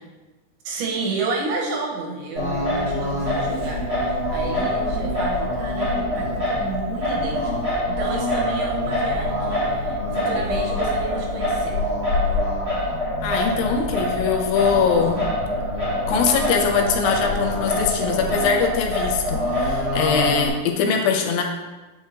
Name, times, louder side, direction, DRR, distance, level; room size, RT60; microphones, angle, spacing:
voice 1, 0.6-11.8, right 3 dB, 90° right, -2 dB, 3.0 m, -31 dB
Singing, 2.4-20.5, left 1 dB, 35° right, 1.7 m, -24 dB
voice 2, 13.2-15.2 16.1-21.4, left 6 dB, 80° left, 3 dB, 2.2 m, -22 dB
7.6 x 5.2 x 2.7 m, 1.2 s
omnidirectional pair, 4.4 m